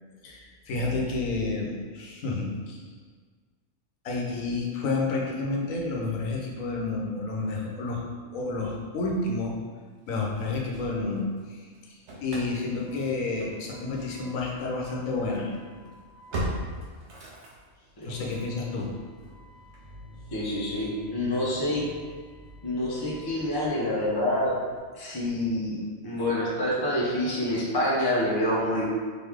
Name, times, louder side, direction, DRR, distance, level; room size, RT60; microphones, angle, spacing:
voice 1, 0.2-2.8 4.0-9.6 10.1-15.5 18.0-18.9, left 3 dB, 85° left, -2 dB, 1.2 m, -30 dB
Engine starting / Slam, 10.1-11.5 11.7-24.8, right 1 dB, 60° right, 1.1 m, -42 dB
voice 2, 20.3-21.9 22.6-24.5 24.9-28.8, left 1 dB, 20° left, -5 dB, 0.7 m, -27 dB
4.2 x 3.2 x 3.5 m, 1.5 s
omnidirectional pair, 1.4 m